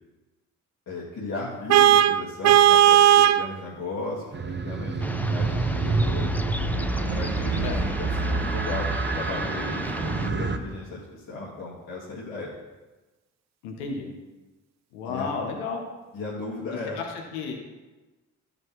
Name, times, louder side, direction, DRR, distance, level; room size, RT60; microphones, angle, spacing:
voice 1, 0.9-4.3 4.6-6.4 7.1-12.6 15.1-15.3 16.1-17.0, left 2 dB, 65° left, -6 dB, 1.9 m, -36 dB
Vehicle horn car horn honking, 1.7-3.5, right 11 dB, 50° right, 0.4 m, -16 dB
sound 1, 4.3-10.6, right 3 dB, 30° right, 1.0 m, -27 dB
sound 2, 5.0-10.3, left 1 dB, 5° left, 0.5 m, -36 dB
voice 2, 13.6-14.1 14.9-15.8 17.0-17.6, left 5 dB, 90° left, 2 dB, 1.1 m, -32 dB
12.5 x 5.1 x 3.2 m, 1.2 s
hypercardioid pair, 45°, 35 cm